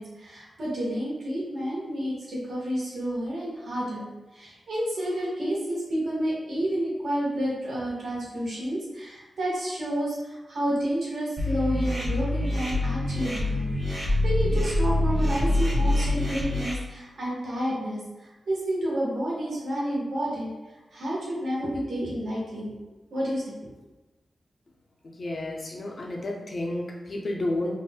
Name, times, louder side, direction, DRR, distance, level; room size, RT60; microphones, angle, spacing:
voice 1, 0.0-4.1 4.3-20.5 20.9-22.7 23.1-23.5, equal, 90° right, -6 dB, 1.2 m, -30 dB
sound 1, 11.4-16.7, left 1 dB, 35° right, 0.6 m, -25 dB
voice 2, 25.0-27.7, left 1 dB, 50° left, 0 dB, 0.5 m, -31 dB
4.0 x 2.4 x 2.2 m, 1.1 s
wide cardioid pair, 115°, 0 cm